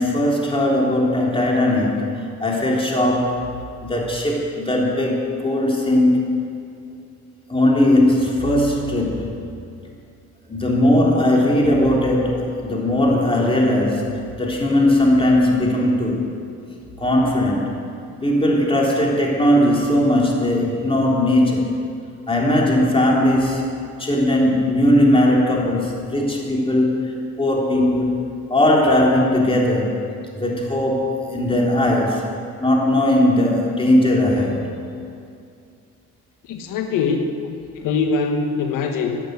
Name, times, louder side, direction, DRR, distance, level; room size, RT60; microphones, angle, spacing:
voice 1, 0.0-3.4 3.8-6.3 7.5-9.5 10.5-14.1 14.3-16.3 17.0-17.7 18.2-21.8 22.3-23.6 24.0-27.0 27.4-28.2 28.5-30.0 30.3-32.2 32.6-34.6, left 1 dB, 15° left, -2 dB, 3.6 m, -18 dB
voice 2, 36.5-37.3 37.8-39.2, left 4 dB, 85° left, 4 dB, 1.3 m, -22 dB
14.5 x 8.9 x 9.5 m, 2.4 s
cardioid pair, 105°, 32 cm